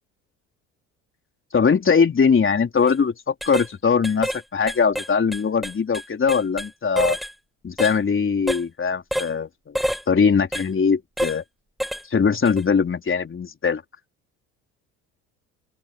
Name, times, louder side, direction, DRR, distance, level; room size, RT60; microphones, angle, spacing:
voice 1, 1.5-7.2 7.6-9.8 10.1-11.4 12.1-13.8, left 6 dB, 30° left, 4.0 m, -21 dB
sound 1, 2.8-3.0 3.4-3.7 4.0-4.4 4.7-6.7 7.0-7.3 7.8-8.0 8.5-8.6 9.1-9.3 9.8-10.0 10.5-10.7 11.2-11.4 11.8-12.0 12.5-12.6, equal, ahead, 1.9 m, -27 dB
open air
hypercardioid pair, 70°, 38 cm